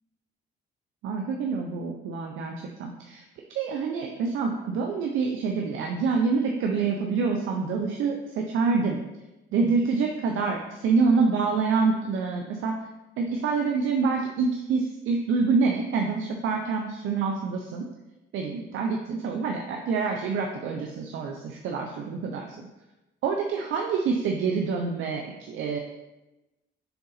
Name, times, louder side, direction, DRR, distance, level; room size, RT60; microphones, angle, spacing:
voice 1, 1.0-2.5 2.8-3.2 3.5-9.0 9.5-12.7 13.2-17.8 18.3-22.6 23.2-25.8, right 4 dB, 80° right, 2 dB, 0.7 m, -26 dB
6.9 x 3.8 x 4.0 m, 1.0 s
cardioid pair, 90°, 20 cm